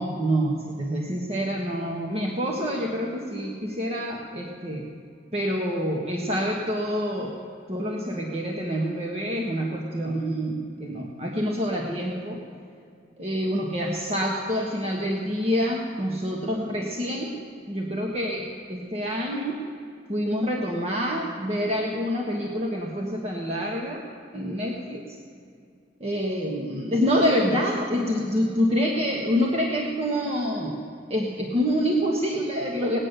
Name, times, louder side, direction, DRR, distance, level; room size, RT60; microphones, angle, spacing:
voice 1, 0.0-4.9 5.3-7.4 7.7-12.4 13.2-17.3 17.7-19.6 20.1-24.0 24.3-25.0 26.0-30.8 31.1-33.0, equal, 35° right, -1 dB, 1.3 m, -27 dB
18.5 x 9.6 x 6.7 m, 2.4 s
head